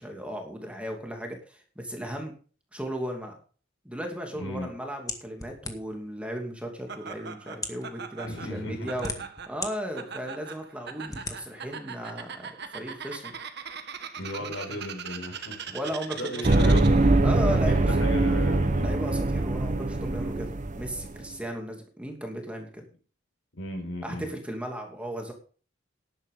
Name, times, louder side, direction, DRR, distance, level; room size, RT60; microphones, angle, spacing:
voice 1, 0.0-2.3 2.7-3.4 3.8-9.1 9.5-13.3 14.4-14.8 15.7-16.7 17.2-17.9 18.8-20.5 20.7-22.8 24.0-25.3, equal, 5° right, 2 dB, 2.7 m, -36 dB
voice 2, 4.3-4.7 8.2-8.9 14.2-15.7 16.2-17.3 17.7-19.0 23.6-24.3, left 1 dB, 75° left, 3 dB, 5.6 m, -36 dB
sound 1, 5.1-6.1 6.9-7.0 7.5-7.9 8.6-9.7 10.2-10.3 11.1-11.4, left 3 dB, 20° left, 1.8 m, -36 dB
Laughter, 6.9-17.1, right 6 dB, 55° right, 1.7 m, -41 dB
sound 2, 16.4-21.2, right 2 dB, 40° right, 1.0 m, -23 dB
13.5 x 11.0 x 3.8 m, 0.39 s
head